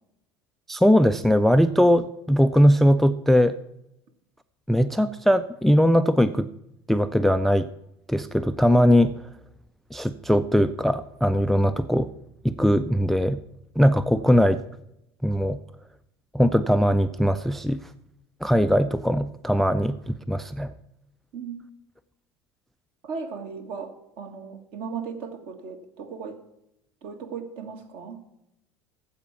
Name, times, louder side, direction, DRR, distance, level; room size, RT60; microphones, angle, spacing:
voice 1, 0.7-3.6 4.7-6.5 6.9-7.7 8.1-9.1 9.9-12.1 12.4-13.4 13.8-14.6 15.2-15.6 16.3-17.8 18.4-20.7, equal, ahead, 14 dB, 0.3 m, -20 dB
voice 2, 21.3-21.7 23.0-26.4 27.0-28.2, right 5 dB, 50° right, 7 dB, 1.4 m, -36 dB
15.0 x 5.0 x 5.8 m, 0.84 s
figure-of-eight pair, 70°, 14 cm